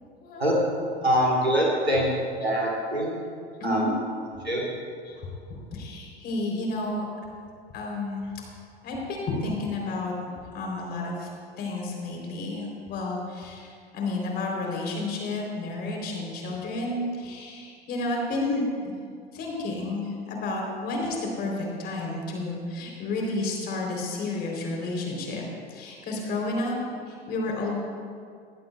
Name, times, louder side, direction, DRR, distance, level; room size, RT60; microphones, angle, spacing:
voice 1, 0.2-0.6 2.4-2.5 3.6-3.9 5.1-5.3 5.7-7.1 7.7-8.3 8.8-10.1 10.5-11.3 11.6-18.6 19.3-25.4 25.7-27.8, left 2 dB, 30° left, 0 dB, 3.5 m, -31 dB
voice 2, 1.0-2.1 2.4-3.2 3.6-3.9 4.4-4.6, equal, 85° right, -2 dB, 2.7 m, -24 dB
20.0 x 15.0 x 2.3 m, 2.2 s
figure-of-eight pair, 85°, 31 cm